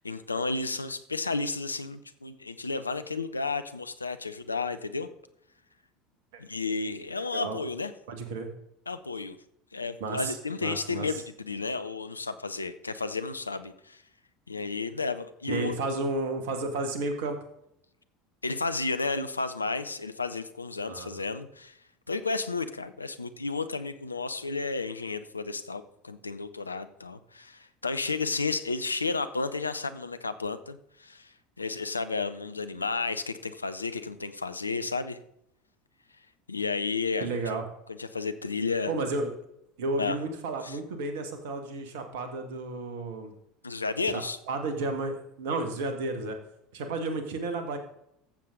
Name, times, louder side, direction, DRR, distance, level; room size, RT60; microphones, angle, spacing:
voice 1, 0.0-5.1 6.4-7.9 8.9-9.4 9.7-14.0 14.5-15.7 18.4-21.8 22.1-31.3 31.6-35.2 36.5-37.6 37.9-38.9 40.0-40.2 40.6-40.8 43.6-44.4, left 4 dB, 85° left, 11 dB, 0.7 m, -32 dB
voice 2, 8.1-8.5 10.0-10.4 10.6-11.1 15.5-17.4 20.9-21.2 37.2-37.6 38.9-39.3 39.8-43.3 44.1-46.4 46.7-47.8, right 3 dB, 65° right, 7 dB, 1.9 m, -32 dB
14.5 x 7.5 x 3.8 m, 0.77 s
figure-of-eight pair, 70°, 0 cm